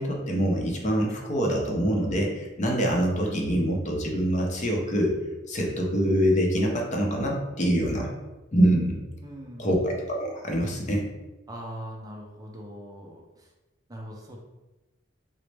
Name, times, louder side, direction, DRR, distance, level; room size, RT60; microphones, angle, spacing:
voice 1, 0.0-5.1 5.5-8.1 8.5-9.0 9.6-11.1, equal, 40° left, 0 dB, 0.6 m, -25 dB
voice 2, 9.2-9.7 11.5-13.5 13.9-14.4, equal, 20° right, -1 dB, 0.5 m, -41 dB
3.9 x 2.1 x 3.2 m, 1.1 s
head